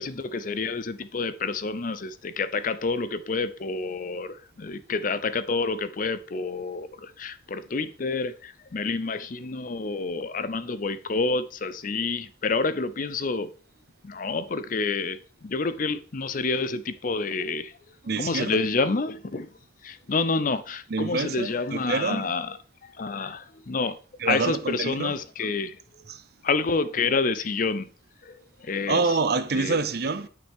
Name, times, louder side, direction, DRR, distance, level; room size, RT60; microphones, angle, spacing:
voice 1, 0.0-13.5 14.0-17.7 18.2-19.5 19.8-22.6 22.8-24.0 24.2-25.8 26.4-27.9 28.2-29.1 29.5-29.8, left 4 dB, 45° left, 0.5 m, -28 dB
voice 2, 18.0-18.6 20.9-22.3 24.2-25.2 26.1-26.2 28.9-30.3, right 4 dB, 55° right, 0.7 m, -27 dB
8.8 x 6.0 x 3.6 m
head